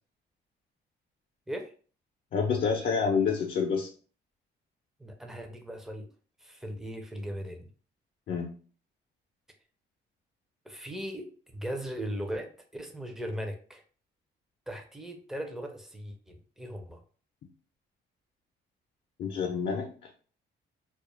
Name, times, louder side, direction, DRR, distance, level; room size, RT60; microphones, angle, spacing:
voice 1, 2.3-3.9 8.3-8.5 19.2-20.1, left 5 dB, 50° left, 1 dB, 0.5 m, -28 dB
voice 2, 5.0-6.1 6.4-7.7 10.7-13.8 14.7-17.0, equal, ahead, 4 dB, 0.5 m, -38 dB
2.3 x 2.0 x 3.0 m, 0.40 s
cardioid pair, 90°, 20 cm